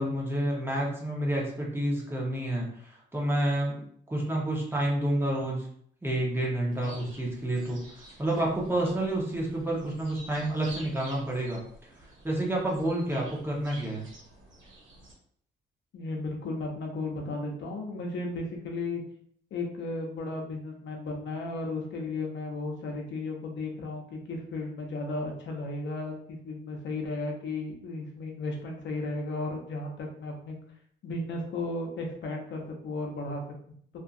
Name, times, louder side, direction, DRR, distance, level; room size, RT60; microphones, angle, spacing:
voice 1, 0.0-3.8 4.1-5.7 6.0-11.6 12.2-14.1, right 1 dB, 10° right, -3 dB, 0.9 m, -29 dB
sound 1, 6.7-15.1, right 2 dB, 75° right, 1.0 m, -50 dB
voice 2, 15.9-19.0 19.5-30.6 31.0-33.4, left 2 dB, 70° left, 1 dB, 0.8 m, -34 dB
2.6 x 2.4 x 2.5 m, 0.63 s
cardioid pair, 90°, 20 cm